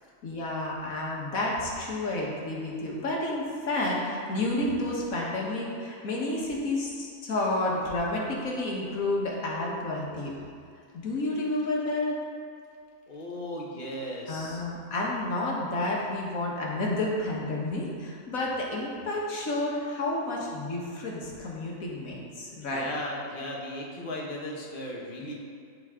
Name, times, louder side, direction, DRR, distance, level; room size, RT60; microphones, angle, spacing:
voice 1, 0.2-10.3 10.9-12.2 14.3-22.9, left 2 dB, 90° left, -3 dB, 1.8 m, -30 dB
voice 2, 13.1-14.6 22.7-25.3, left 1 dB, 40° left, -3 dB, 1.4 m, -36 dB
13.0 x 4.8 x 3.7 m, 2.4 s
omnidirectional pair, 1.4 m